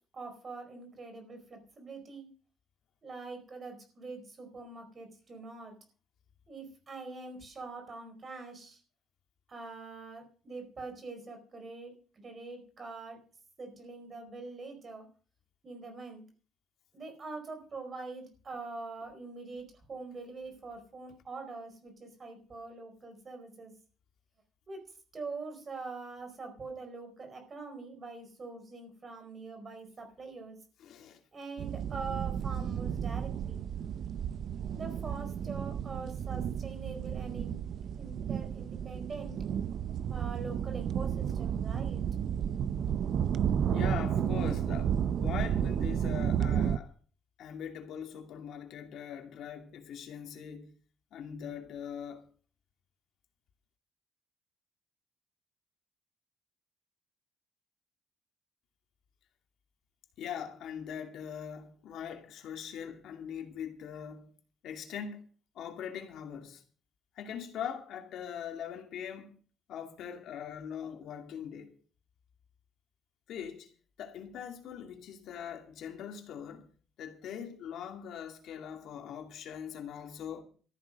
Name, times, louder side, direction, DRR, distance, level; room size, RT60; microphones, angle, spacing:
voice 1, 0.1-2.3 3.0-5.8 6.5-8.8 9.5-13.2 13.6-15.1 15.6-16.2 16.9-23.7 24.7-24.9 25.1-30.6 31.3-33.6 34.7-37.6 38.0-39.4 40.1-42.0, right 4 dB, 30° right, 4.7 m, -44 dB
voice 2, 30.8-31.2 43.7-46.9 47.4-50.7 51.1-52.3 60.2-64.3 64.6-65.2 65.5-66.6 67.2-69.3 69.7-71.8 73.3-73.7 74.0-76.7 77.0-80.4, left 8 dB, 70° left, 2.4 m, -41 dB
sound 1, 31.6-46.8, right 8 dB, 50° right, 0.6 m, -32 dB
14.5 x 8.7 x 6.5 m
cardioid pair, 170°, 0 cm